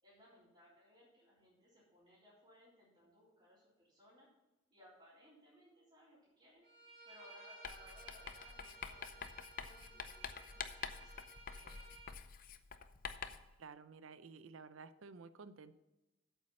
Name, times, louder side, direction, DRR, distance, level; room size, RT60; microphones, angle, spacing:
voice 1, 0.0-4.3 4.7-6.7 7.1-9.3 9.6-11.8, left 1 dB, 25° right, -10 dB, 3.8 m, -64 dB
Bowed string instrument, 6.6-12.1, right 3 dB, 60° right, 3.7 m, -57 dB
Writing, 7.6-13.5, left 6 dB, 45° left, 0.6 m, -47 dB
voice 2, 13.6-15.7, right 4 dB, 80° right, 14 dB, 0.6 m, -53 dB
8.4 x 8.0 x 5.5 m, 1.0 s
head